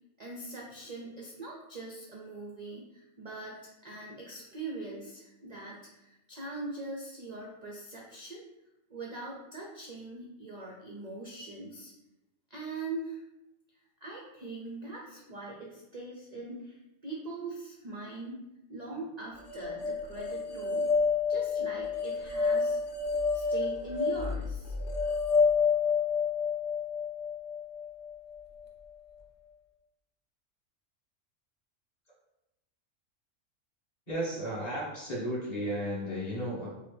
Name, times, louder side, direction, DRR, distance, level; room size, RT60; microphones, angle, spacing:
voice 1, 0.2-8.4 8.9-11.9 12.5-13.2 14.0-18.4 18.7-20.9 21.3-22.8 23.3-24.7, right 2 dB, 50° right, -2 dB, 0.5 m, -42 dB
sound 1, 19.5-28.6, left 5 dB, 65° left, 0.5 m, -29 dB
voice 2, 34.1-36.7, equal, 30° left, -7 dB, 1.5 m, -34 dB
5.5 x 2.1 x 3.4 m, 0.92 s
omnidirectional pair, 1.4 m